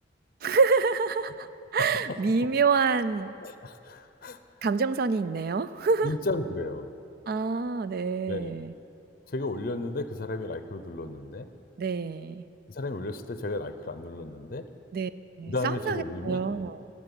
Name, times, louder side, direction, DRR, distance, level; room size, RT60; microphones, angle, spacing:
voice 1, 0.4-1.5 1.7-3.4 4.6-6.1 7.3-8.7 11.8-12.4 14.9-15.1 15.4-16.8, right 4 dB, 55° right, 14 dB, 0.4 m, -26 dB
voice 2, 1.8-2.5 3.4-4.4 6.0-6.9 8.3-8.5 9.3-11.5 12.7-14.7 15.5-16.5, left 2 dB, 55° left, 11 dB, 0.6 m, -34 dB
11.5 x 7.4 x 9.9 m, 2.6 s
head